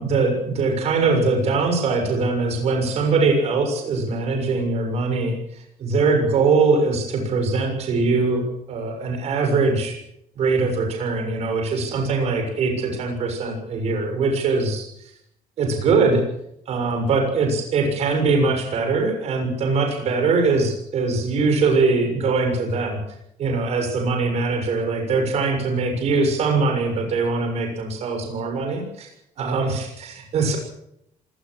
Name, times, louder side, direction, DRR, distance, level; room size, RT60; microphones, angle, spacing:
voice 1, 0.0-5.4 5.8-10.0 10.4-14.9 15.6-16.2 16.7-23.0 23.4-29.1 29.4-30.6, right 3 dB, 45° right, 4 dB, 6.9 m, -22 dB
26.5 x 18.5 x 6.5 m, 0.76 s
cardioid pair, 170°, 15 cm